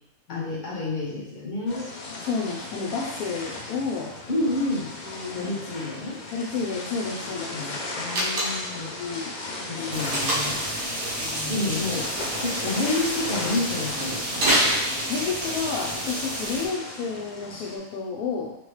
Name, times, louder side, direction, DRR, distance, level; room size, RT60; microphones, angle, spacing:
voice 1, 0.3-1.9 4.3-4.9 5.3-6.2 7.5-8.9 9.7-10.6 10.9-11.0 11.5-12.1 12.4-14.6, left 2 dB, 35° left, -5 dB, 1.0 m, -29 dB
sound 1, 1.7-17.8, left 2 dB, 55° left, 0.5 m, -36 dB
voice 2, 2.2-4.1 5.0-5.5 6.3-7.7 9.0-10.0 11.2-11.7 15.1-18.6, left 5 dB, 85° left, -4 dB, 1.1 m, -31 dB
Slam, 8.1-8.8 10.1-10.7 14.3-15.4, equal, 85° right, 1.5 m, -24 dB
sound 2, 9.9-16.7, right 1 dB, 60° right, 1.2 m, -31 dB
4.2 x 3.0 x 3.1 m, 0.83 s
omnidirectional pair, 1.5 m